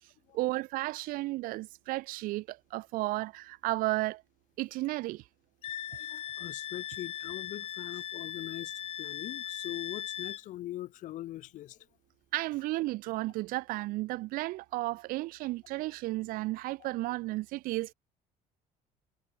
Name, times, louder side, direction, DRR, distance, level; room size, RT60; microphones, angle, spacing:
voice 1, 0.3-4.2 4.6-5.2 12.3-17.9, right 19 dB, 75° right, 1.6 m, -33 dB
Wind instrument woodwind instrument, 5.6-10.4, left 10 dB, 40° left, 2.1 m, -39 dB
voice 2, 5.9-11.8 16.8-16.9, left 14 dB, 60° left, 6.0 m, -42 dB
cardioid pair, 160°, 15 cm